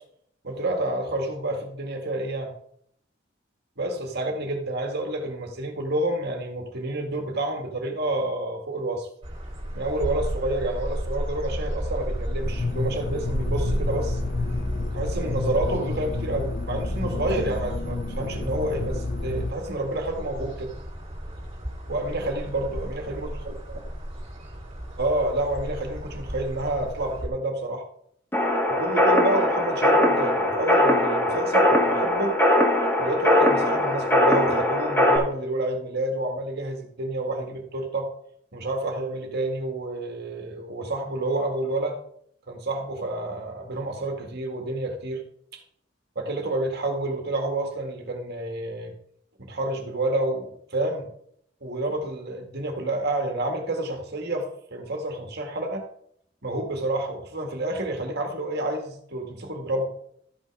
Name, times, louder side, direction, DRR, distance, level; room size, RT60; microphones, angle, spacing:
voice 1, 0.4-2.5 3.8-9.1 9.7-14.2 14.9-20.8 21.9-23.6 25.0-27.8 28.7-32.4 33.0-38.1 38.5-42.0 42.5-45.2 46.2-48.9 49.4-51.1 51.6-55.9 56.4-59.9, right 1 dB, 60° right, 2 dB, 2.0 m, -29 dB
sound 1, 9.2-27.3, equal, 30° right, 3.0 m, -33 dB
sound 2, 12.4-19.5, left 3 dB, 40° left, 0.6 m, -30 dB
sound 3, 28.3-35.2, left 1 dB, 10° left, 2.1 m, -21 dB
13.0 x 5.6 x 4.9 m, 0.67 s
head